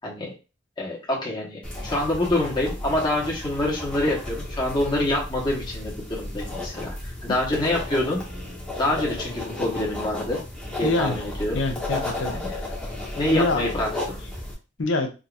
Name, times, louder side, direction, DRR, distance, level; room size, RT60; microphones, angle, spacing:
voice 1, 0.0-0.3 0.8-8.2 8.8-10.4 10.8-11.5 12.3-12.5 13.1-14.2, left 1 dB, 25° left, -4 dB, 1.1 m, -26 dB
sound 1, 1.6-14.5, left 1 dB, 5° left, 1.1 m, -34 dB
voice 2, 10.8-11.2 11.5-12.8 13.3-13.7 14.8-15.1, left 2 dB, 70° left, 5 dB, 0.7 m, -26 dB
3.7 x 2.7 x 2.4 m, 0.30 s
head